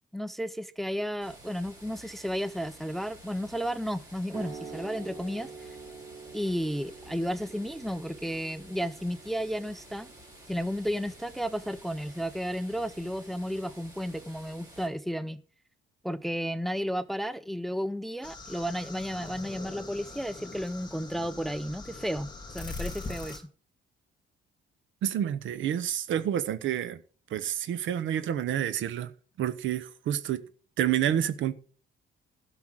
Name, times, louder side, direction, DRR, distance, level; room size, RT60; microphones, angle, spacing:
voice 1, 0.1-5.7 6.3-10.1 10.5-15.4 16.0-23.4, equal, ahead, 0.5 m, -33 dB
sound 1, 1.2-14.9, right 1 dB, 20° right, 4.0 m, -52 dB
sound 2, 4.3-11.5, right 4 dB, 50° right, 4.7 m, -47 dB
sound 3, 18.2-23.4, left 3 dB, 20° left, 2.9 m, -42 dB
voice 2, 25.0-27.0 27.3-29.1 29.4-30.4 30.8-31.5, right 10 dB, 75° right, 0.9 m, -29 dB
12.0 x 6.0 x 6.1 m
cardioid pair, 90°, 20 cm